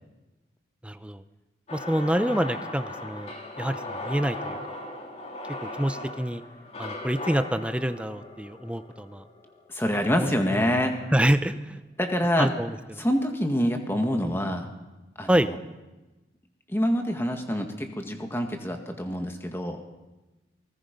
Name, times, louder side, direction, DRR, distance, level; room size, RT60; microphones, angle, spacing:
voice 1, 0.8-1.2 1.7-4.6 5.6-6.4 6.8-9.2 10.2-10.3 11.1-11.8 12.4-13.0 15.3-15.5, right 1 dB, 5° right, 11 dB, 0.7 m, -27 dB
sound 1, 1.7-9.8, left 2 dB, 35° left, 2.7 m, -38 dB
voice 2, 9.7-10.9 12.0-12.5 13.0-14.7 15.2-15.6 16.7-19.8, equal, 15° left, 4 dB, 1.8 m, -26 dB
28.5 x 19.5 x 5.3 m, 1.1 s
head